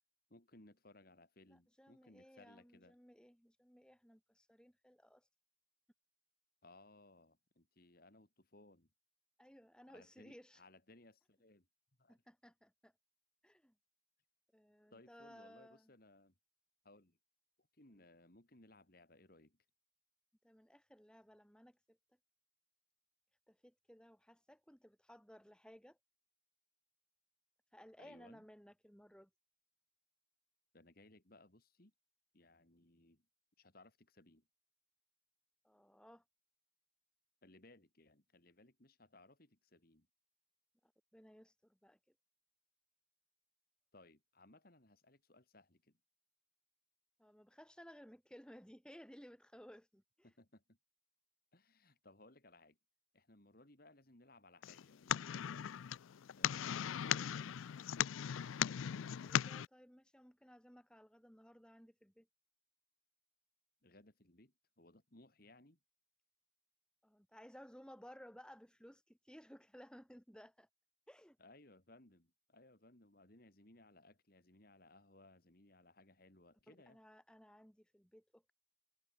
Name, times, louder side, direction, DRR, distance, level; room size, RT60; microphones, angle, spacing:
voice 1, 0.3-3.0 6.6-8.9 9.9-11.7 12.0-12.2 14.9-16.3 16.8-17.2 17.6-19.6 28.0-28.4 30.7-31.9 32.3-33.3 33.6-34.5 37.4-40.1 43.9-46.0 50.2-50.8 51.5-52.8 53.1-55.8 56.4-57.8 63.8-65.8 71.4-77.0, left 2 dB, 50° left, 2.7 m, -64 dB
voice 2, 1.5-5.3 9.4-10.6 12.1-12.9 13.4-13.7 14.5-15.9 20.4-22.0 23.5-26.0 27.7-29.3 35.6-36.2 40.8-42.0 47.2-50.3 58.9-62.3 67.0-70.7 71.1-71.4 76.7-78.5, equal, 5° left, 6.1 m, -59 dB
sound 1, 54.6-59.7, left 9 dB, 85° left, 0.4 m, -38 dB
head